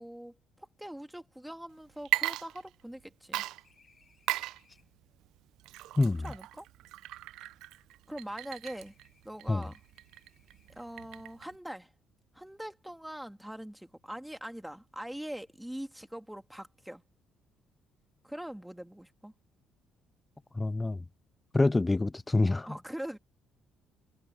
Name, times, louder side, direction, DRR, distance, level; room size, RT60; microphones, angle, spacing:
voice 1, 0.0-3.4 6.1-6.7 8.1-8.9 9.2-9.8 10.8-11.9 12.3-17.0 18.2-19.3 22.7-23.2, equal, 5° right, 2.2 m, -42 dB
sound 1, 1.8-5.1 5.9-8.3 8.7-11.0, left 5 dB, 35° left, 7.5 m, -70 dB
Water / Liquid, 2.0-3.0 3.3-11.6, right 16 dB, 85° right, 0.4 m, -37 dB
voice 2, 20.6-21.0 21.5-22.7, left 2 dB, 15° left, 0.4 m, -26 dB
cardioid pair, 90°, 0 cm